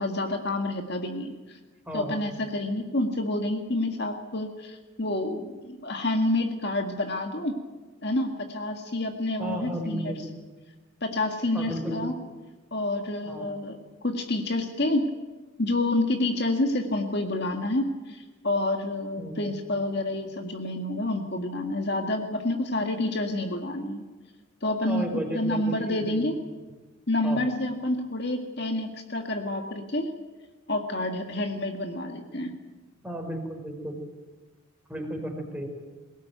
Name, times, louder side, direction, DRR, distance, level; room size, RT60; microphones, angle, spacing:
voice 1, 0.0-1.3 1.9-7.6 8.0-10.2 11.0-12.1 12.7-15.1 15.6-24.0 24.6-25.1 25.3-26.4 27.1-30.1 30.7-32.5, left 1 dB, 50° left, 4 dB, 2.0 m, -28 dB
voice 2, 1.9-2.2 9.4-10.2 11.5-12.0 13.3-13.5 19.2-19.5 24.9-26.3 27.2-27.5 33.0-34.0 34.9-35.7, equal, 5° right, 2 dB, 4.4 m, -34 dB
22.0 x 18.0 x 9.2 m, 1.2 s
head